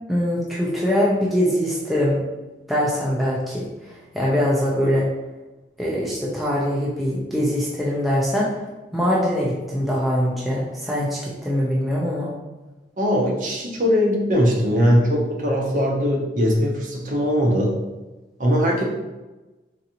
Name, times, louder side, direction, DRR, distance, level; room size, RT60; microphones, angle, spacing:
voice 1, 0.1-2.2 2.7-5.1 5.8-8.6 8.9-12.3, equal, ahead, -6 dB, 0.4 m, -23 dB
voice 2, 13.0-17.8 18.4-18.8, equal, 45° right, -2 dB, 0.6 m, -20 dB
3.9 x 2.5 x 2.8 m, 1.1 s
head